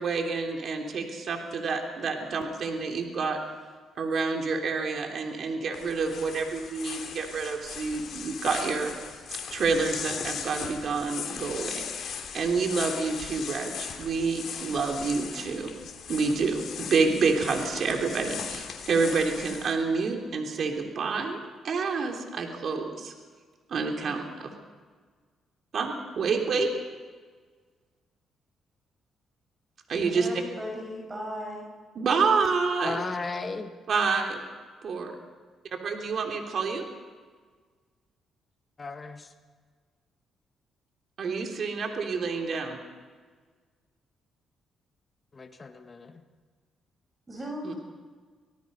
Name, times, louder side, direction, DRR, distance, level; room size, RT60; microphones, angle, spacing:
voice 1, 0.0-3.4 4.0-9.2 9.5-15.7 16.1-21.4 21.6-23.1 23.7-24.5 25.7-26.7 29.9-30.3 31.9-33.0 33.9-34.4 34.8-35.1 35.8-36.9 41.2-42.8 47.6-47.7, right 4 dB, 55° right, 3 dB, 3.3 m, -28 dB
sound 1, 5.7-19.7, left 7 dB, 65° left, 3.0 m, -38 dB
voice 2, 29.9-31.7 47.3-47.7, equal, 25° right, 1 dB, 6.1 m, -37 dB
voice 3, 32.8-33.7 38.8-39.3 45.3-46.2, left 3 dB, 35° left, 6 dB, 1.8 m, -36 dB
26.0 x 18.0 x 5.5 m, 1.5 s
cardioid pair, 90°, 0 cm